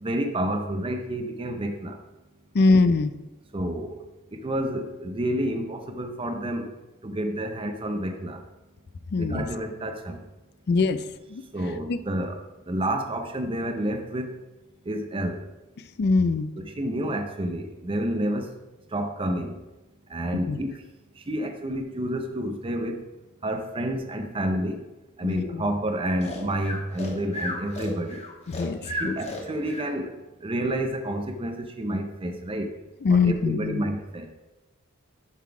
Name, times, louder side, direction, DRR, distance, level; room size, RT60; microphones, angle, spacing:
voice 1, 0.0-2.0 3.5-4.0 4.3-6.7 7.0-8.4 9.2-10.2 11.5-12.4 12.7-14.3 14.9-15.4 16.7-18.5 18.9-19.6 20.1-20.8 21.2-23.0 23.4-24.8 25.2-28.2 28.8-32.7 33.2-34.3, right 1 dB, 25° right, 5 dB, 0.5 m, -29 dB
voice 2, 2.5-3.1 9.1-9.5 10.7-11.4 11.9-12.0 15.8-16.5 20.5-20.6 25.2-25.7 28.5-29.1 33.0-33.8, left 3 dB, 50° left, 13 dB, 0.4 m, -23 dB
Breathing, 26.2-29.9, left 1 dB, 30° left, 1.2 m, -34 dB
7.2 x 3.9 x 4.8 m, 1.0 s
head